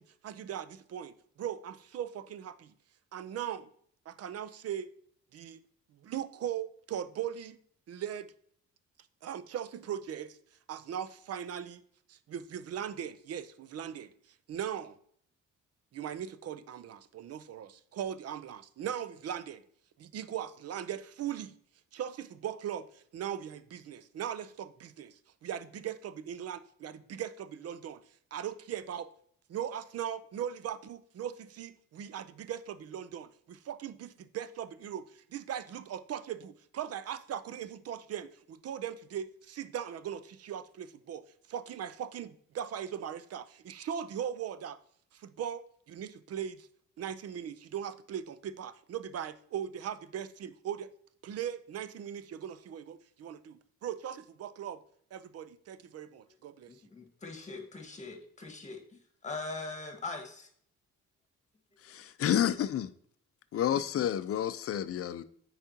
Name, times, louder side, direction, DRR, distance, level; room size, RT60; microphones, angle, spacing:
voice 1, 0.0-2.7 3.1-3.7 4.1-4.9 5.3-5.6 6.0-7.6 7.9-8.3 9.2-10.4 10.7-11.8 12.1-14.1 14.5-15.0 15.9-19.6 20.0-21.5 21.9-28.0 28.3-29.1 29.5-44.8 45.1-46.7 47.0-50.9 51.2-54.8 55.1-56.7, right 9 dB, 55° right, 0.5 m, -39 dB
voice 2, 56.9-58.8 59.2-60.5, left 3 dB, 25° left, 1.6 m, -41 dB
voice 3, 61.8-62.9 63.5-65.2, left 10 dB, 50° left, 0.5 m, -30 dB
8.7 x 4.8 x 2.8 m
cardioid pair, 90°, 30 cm